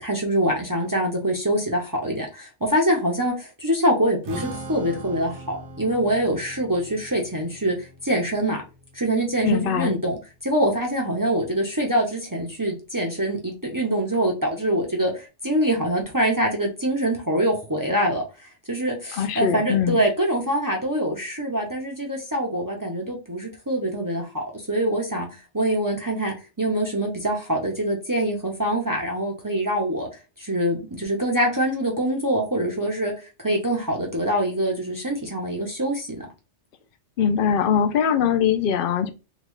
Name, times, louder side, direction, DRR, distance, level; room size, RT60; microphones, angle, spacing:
voice 1, 0.0-8.6 8.9-18.2 18.7-30.1 30.4-33.1 33.4-36.3, right 1 dB, 20° right, 0.6 m, -24 dB
Strum, 4.2-10.5, right 2 dB, 80° right, 1.0 m, -41 dB
voice 2, 9.4-10.0 19.2-20.0 37.2-39.1, left 8 dB, 55° left, 0.7 m, -21 dB
3.7 x 2.3 x 3.0 m
omnidirectional pair, 1.2 m